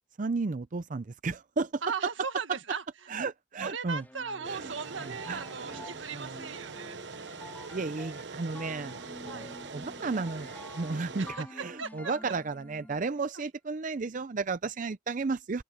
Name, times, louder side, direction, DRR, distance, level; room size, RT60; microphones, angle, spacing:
voice 1, 0.2-1.8 3.1-4.0 4.5-4.7 5.0-5.9 6.1-6.4 7.7-15.6, right 4 dB, 40° right, 0.5 m, -34 dB
voice 2, 1.8-2.8 3.6-7.0 9.2-9.5 11.2-11.4 11.8-12.1 13.3-13.5, right 5 dB, 85° right, 1.8 m, -37 dB
sound 1, 4.0-13.2, left 1 dB, 10° left, 3.1 m, -49 dB
sound 2, 4.4-11.3, right 4 dB, 65° right, 1.0 m, -43 dB
open air
head